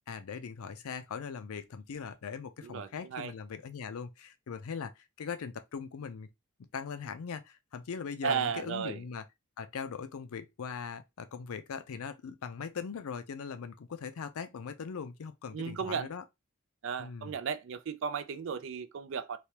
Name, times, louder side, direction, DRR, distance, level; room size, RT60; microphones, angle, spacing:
voice 1, 0.1-4.9 5.2-6.3 6.7-9.2 9.6-16.2 17.0-17.4, left 6 dB, 80° left, 0.4 m, -40 dB
voice 2, 2.6-3.3 8.2-9.0 15.5-16.1 16.8-19.4, right 7 dB, 60° right, 0.3 m, -35 dB
3.3 x 2.2 x 2.8 m
head